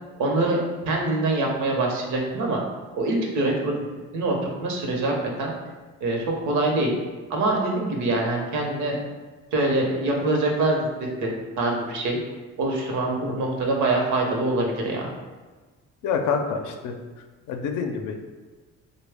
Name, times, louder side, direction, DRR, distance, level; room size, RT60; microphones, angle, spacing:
voice 1, 0.2-2.6 2.9-3.8 4.1-5.5 6.0-7.0 7.3-9.0 9.5-11.3 11.6-12.2 12.6-15.1, right 2 dB, 75° right, 0 dB, 0.8 m, -24 dB
voice 2, 16.0-16.9 17.5-18.3, left 5 dB, 80° left, 4 dB, 0.5 m, -27 dB
3.1 x 2.2 x 3.4 m, 1.3 s
cardioid pair, 90°, 30 cm